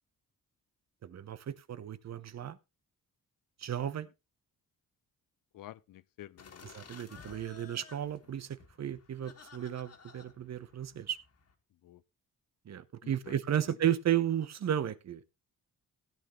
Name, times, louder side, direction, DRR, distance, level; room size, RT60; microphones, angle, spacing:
voice 1, 1.0-2.6 3.6-4.1 6.7-11.2 12.7-15.2, right 10 dB, 55° right, 0.9 m, -34 dB
voice 2, 5.5-6.7 11.8-12.0 13.0-13.4 13.7-13.8, left 14 dB, 75° left, 0.6 m, -50 dB
sound 1, 6.4-11.5, left 5 dB, 50° left, 1.9 m, -55 dB
16.5 x 9.1 x 3.1 m
cardioid pair, 105°, 33 cm